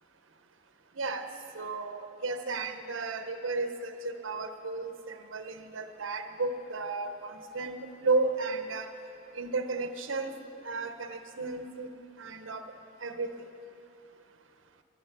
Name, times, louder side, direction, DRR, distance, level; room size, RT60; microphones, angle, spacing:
voice 1, 1.0-1.3 1.5-7.8 8.0-8.9 9.3-10.3 10.6-11.9 12.2-12.6 13.0-13.4, right 3 dB, 70° right, 8 dB, 0.8 m, -33 dB
13.5 x 9.9 x 6.7 m, 2.7 s
head